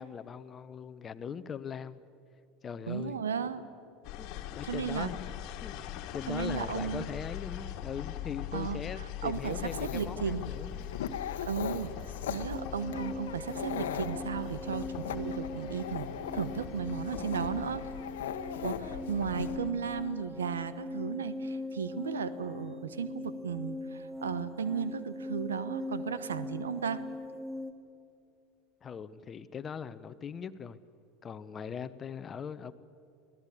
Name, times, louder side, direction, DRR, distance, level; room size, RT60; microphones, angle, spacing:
voice 1, 0.0-2.0 2.6-3.2 4.2-5.3 5.6-10.9 13.1-13.2 28.8-30.8 31.2-32.7, left 7 dB, 35° left, 14 dB, 1.0 m, -40 dB
voice 2, 2.9-3.7 4.7-5.1 6.3-7.1 8.5-8.8 9.2-10.5 11.5-11.9 12.3-16.1 16.3-17.8 18.6-27.0, right 6 dB, 90° right, 14 dB, 1.0 m, -35 dB
sound 1, 4.0-19.7, left 11 dB, 60° left, 1.8 m, -42 dB
Dog, 9.3-19.6, left 8 dB, 80° left, 1.2 m, -40 dB
sound 2, 12.5-27.7, left 2 dB, 15° right, 2.6 m, -41 dB
24.5 x 17.0 x 8.6 m, 2.5 s
hypercardioid pair, 80°, 0 cm